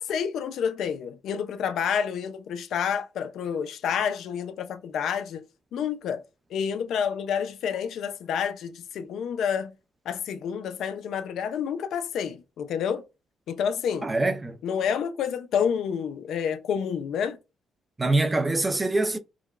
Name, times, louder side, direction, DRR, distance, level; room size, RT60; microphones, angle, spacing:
voice 1, 0.0-5.4 5.7-6.2 6.5-9.7 10.1-13.0 13.5-14.1 14.6-17.4, left 7 dB, 75° left, 0.5 m, -29 dB
voice 2, 14.0-14.6 18.0-19.2, right 2 dB, 20° right, 0.5 m, -24 dB
4.7 x 2.1 x 2.4 m
cardioid pair, 90°, 0 cm